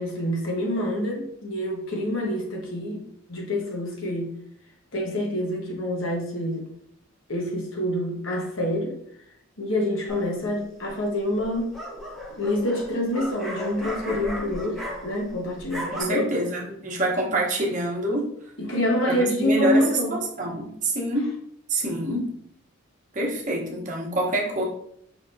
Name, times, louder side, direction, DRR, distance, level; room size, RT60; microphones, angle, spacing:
voice 1, 0.0-4.3 4.9-6.7 7.3-9.0 9.6-11.7 12.3-16.3 18.6-20.2, left 1 dB, 65° left, -1 dB, 1.2 m, -27 dB
sound 1, 10.1-10.5 11.4-15.3 15.6-16.0, equal, ahead, 0.9 m, -35 dB
voice 2, 15.9-18.3 19.1-21.3 21.7-22.3 23.1-24.6, right 1 dB, 40° right, -2 dB, 0.9 m, -26 dB
5.0 x 3.3 x 2.6 m, 0.71 s
head